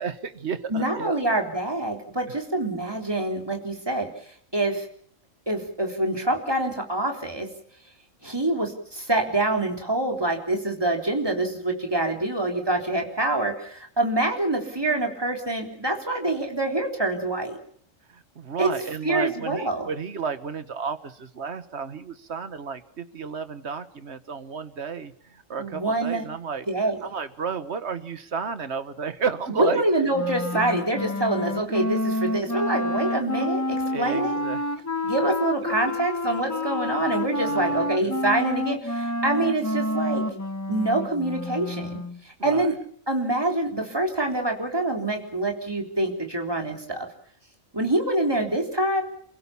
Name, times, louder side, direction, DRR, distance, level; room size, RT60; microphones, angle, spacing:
voice 1, 0.0-1.2 18.1-26.6 27.0-29.8 30.5-30.8 33.3-33.5 33.9-34.6 37.4-38.1 42.4-42.7, right 6 dB, 60° right, 11 dB, 1.6 m, -32 dB
voice 2, 0.7-4.1 4.5-4.9 5.5-7.5 8.2-17.6 18.6-18.7 19.0-19.9 25.6-26.3 26.7-27.0 29.5-34.4 35.0-40.2 40.7-42.7 43.1-47.1 47.7-49.0, right 2 dB, 20° right, 2 dB, 3.7 m, -26 dB
Wind instrument woodwind instrument, 30.1-42.2, left 1 dB, 15° left, 1.5 m, -29 dB
29.0 x 16.0 x 7.1 m, 0.65 s
omnidirectional pair, 1.3 m